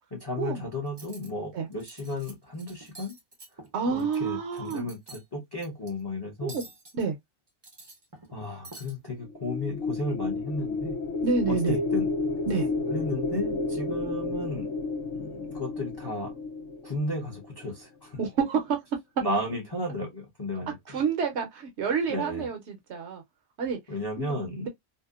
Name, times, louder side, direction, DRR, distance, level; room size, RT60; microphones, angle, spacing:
voice 1, 0.1-3.2 3.9-6.6 8.3-10.9 11.5-12.1 12.9-14.7 15.1-16.4 16.8-18.2 19.2-21.0 22.1-22.5 23.9-24.7, left 1 dB, 25° left, 0.6 m, -34 dB
Cutlery silverware, 0.9-1.3 1.7-2.3 2.6-4.2 4.5-5.2 5.6-5.9 6.5-7.0 7.5-8.4 8.6-8.9, right 2 dB, 30° right, 0.5 m, -48 dB
voice 2, 3.7-4.9 6.4-6.6 6.9-7.2 11.2-11.8 12.5-12.7 18.2-18.8 20.9-23.2 23.6-23.8 24.2-24.3 24.6-24.7, right 5 dB, 65° right, 0.9 m, -28 dB
sound 1, 9.2-17.6, left 3 dB, 85° left, 1.0 m, -31 dB
2.7 x 2.1 x 2.3 m
omnidirectional pair, 1.3 m